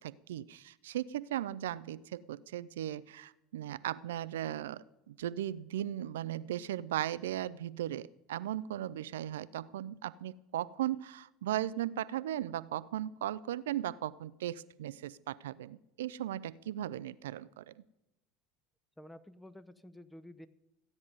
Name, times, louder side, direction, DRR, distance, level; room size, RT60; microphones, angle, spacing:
voice 1, 0.0-17.7, right 12 dB, 70° right, 19 dB, 0.4 m, -37 dB
voice 2, 19.0-20.5, left 1 dB, 5° left, 12 dB, 0.8 m, -51 dB
15.0 x 9.5 x 5.3 m, 0.93 s
figure-of-eight pair, 70°, 0 cm